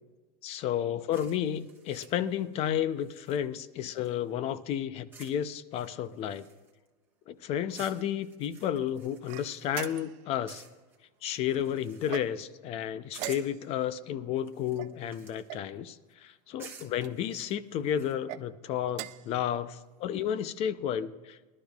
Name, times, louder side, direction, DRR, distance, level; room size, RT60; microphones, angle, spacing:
voice 1, 0.4-6.5 7.3-10.6 11.2-21.5, left 10 dB, 30° left, 15 dB, 0.5 m, -32 dB
sound 1, 1.1-4.3 5.1-5.4 5.7-6.9 7.7-10.0 10.5-11.0 11.3-12.4 13.1-13.6 14.4-15.6 16.6-18.1, right 5 dB, 10° right, 1.3 m, -53 dB
sound 2, 9.3-10.3 12.0-12.6 13.1-13.9 14.8-15.7 16.6-17.2 18.1-18.4 18.9-19.4, right 16 dB, 35° right, 0.4 m, -42 dB
19.5 x 12.0 x 2.3 m, 1.3 s
supercardioid pair, 150°, 20 cm